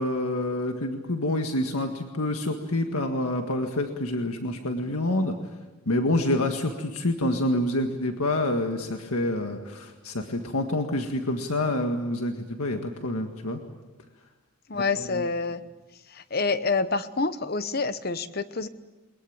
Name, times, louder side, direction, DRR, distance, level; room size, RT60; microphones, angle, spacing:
voice 1, 0.0-5.4 5.9-13.6 14.7-15.3, left 1 dB, 90° left, 4 dB, 1.8 m, -27 dB
voice 2, 14.7-15.6 16.3-18.7, left 4 dB, 45° left, 12 dB, 1.0 m, -27 dB
22.5 x 21.5 x 8.8 m, 1.1 s
head